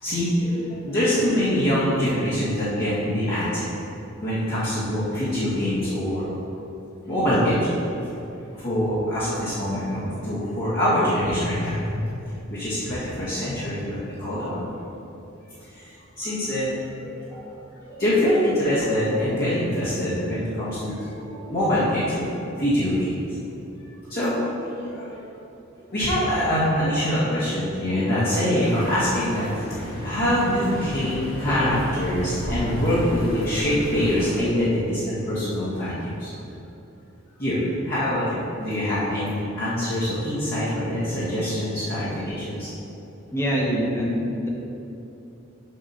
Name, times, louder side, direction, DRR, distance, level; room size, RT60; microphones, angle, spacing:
voice 1, 0.0-3.7 4.2-6.3 7.0-7.7 8.6-11.9 12.5-14.6 15.7-15.8 16.2-17.4 17.8-23.2 24.1-25.3 25.9-36.3 37.4-37.6 37.8-42.7, equal, 50° left, -11 dB, 1.7 m, -24 dB
sound 1, 28.6-34.4, equal, 70° left, 1.7 m, -32 dB
voice 2, 43.3-44.5, equal, 15° left, -3 dB, 1.1 m, -24 dB
7.4 x 4.1 x 5.7 m, 2.9 s
head